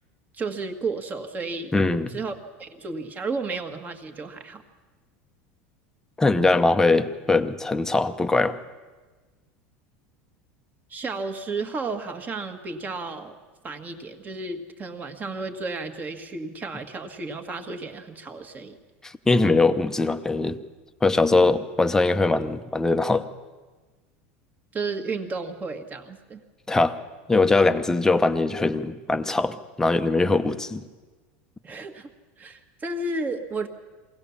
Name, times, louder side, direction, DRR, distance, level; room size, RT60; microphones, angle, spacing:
voice 1, 0.3-1.7 2.1-4.6 10.9-13.4 13.6-18.8 24.7-26.4 31.6-32.1 32.4-33.7, right 3 dB, 25° right, 7 dB, 1.6 m, -32 dB
voice 2, 1.7-2.2 6.2-8.5 19.0-20.6 21.0-23.2 26.7-27.0 27.3-30.8, left 3 dB, 10° left, 9 dB, 0.8 m, -21 dB
23.0 x 17.0 x 7.1 m, 1.3 s
supercardioid pair, 135°, 7 cm